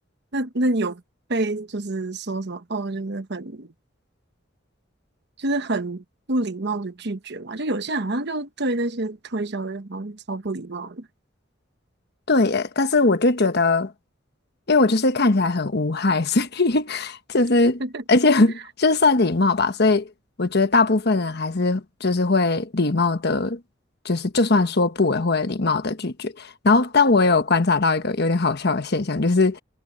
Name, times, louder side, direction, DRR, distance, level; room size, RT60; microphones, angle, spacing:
voice 1, 0.3-1.0 1.3-3.7 5.4-11.1 17.8-18.0, right 2 dB, 60° right, 1.2 m, -27 dB
voice 2, 12.3-13.9 14.7-17.8 18.1-20.1 20.4-23.6 24.0-29.6, left 3 dB, 55° left, 1.3 m, -20 dB
head